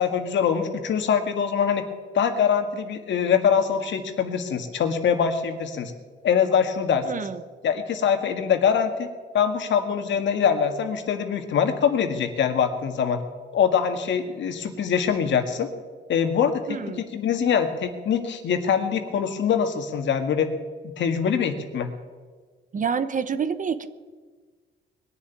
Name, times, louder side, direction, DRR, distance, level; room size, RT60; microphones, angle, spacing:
voice 1, 0.0-1.8 2.1-5.9 6.2-7.1 7.6-13.2 13.5-15.7 16.1-20.5 21.0-21.9, left 7 dB, 65° left, 7 dB, 1.8 m, -23 dB
voice 2, 7.0-7.4 16.7-17.1 22.7-23.9, right 6 dB, 40° right, 13 dB, 1.0 m, -28 dB
21.0 x 7.1 x 9.3 m, 1.5 s
cardioid pair, 90°, 20 cm